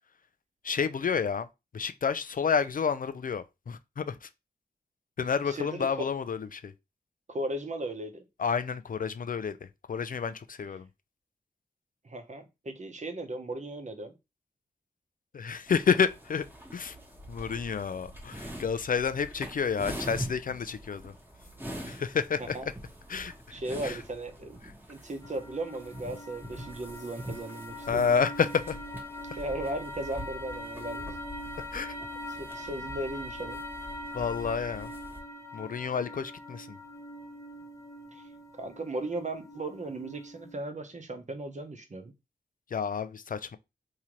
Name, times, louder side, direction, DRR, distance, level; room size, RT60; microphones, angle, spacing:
voice 1, 0.6-1.5 1.7-4.3 5.2-6.7 8.4-10.9 15.3-16.5 16.7-17.0 17.3-21.1 21.8-22.6 23.1-24.0 27.9-28.8 31.7-32.0 34.1-34.9 35.5-36.8 42.7-43.6, left 6 dB, 50° left, 0.4 m, -30 dB
voice 2, 5.5-6.1 7.3-8.2 12.0-14.1 22.5-22.7 23.5-24.6 24.9-28.1 29.3-31.1 32.3-33.6 38.1-38.2 38.5-42.1, right 1 dB, 40° right, 0.9 m, -36 dB
sound 1, 15.7-35.2, right 1 dB, 10° right, 1.2 m, -44 dB
sound 2, 25.2-40.5, left 1 dB, 20° left, 0.7 m, -43 dB
3.7 x 2.8 x 3.0 m
cardioid pair, 60°, 18 cm